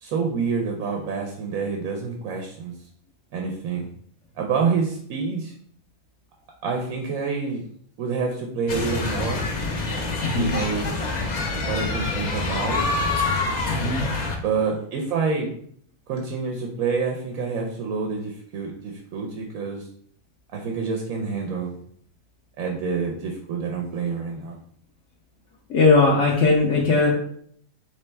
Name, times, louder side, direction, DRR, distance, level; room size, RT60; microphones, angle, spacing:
voice 1, 0.0-2.7 3.3-3.9 4.4-5.5 6.6-7.6 8.0-9.5 10.3-10.9 11.7-12.9 14.4-15.5 16.1-19.9 20.5-21.7 22.6-24.6, right 5 dB, 90° right, 1 dB, 1.1 m, -27 dB
sound 1, 8.7-14.4, left 3 dB, 45° left, 0.6 m, -26 dB
voice 2, 10.2-10.6 13.7-14.1 25.7-27.1, left 3 dB, 65° left, -3 dB, 1.1 m, -19 dB
4.1 x 3.3 x 3.3 m, 0.62 s
omnidirectional pair, 1.4 m